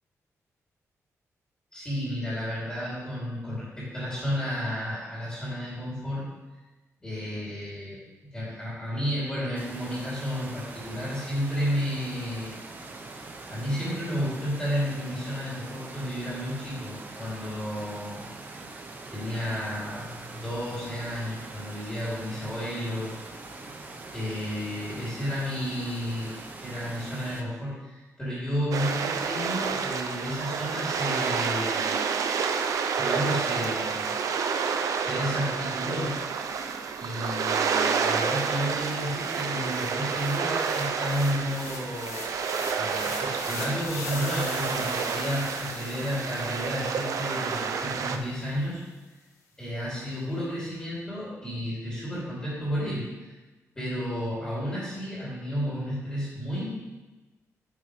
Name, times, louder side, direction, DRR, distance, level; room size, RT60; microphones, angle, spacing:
voice 1, 1.7-6.3 7.0-8.0 8.3-12.6 13.5-18.3 19.1-23.2 24.1-32.0 33.0-34.4 35.0-36.2 37.0-42.3 42.7-48.8 49.6-53.3 53.7-56.7, equal, 15° left, -9 dB, 3.1 m, -32 dB
sound 1, 9.6-27.4, right 3 dB, 30° right, 0.9 m, -43 dB
sound 2, 28.7-48.2, right 6 dB, 80° right, 0.7 m, -29 dB
sound 3, 37.5-37.6 37.9-48.2, left 3 dB, 70° left, 1.5 m, -42 dB
9.6 x 8.8 x 3.3 m, 1.2 s
wide cardioid pair, 180°, 6 cm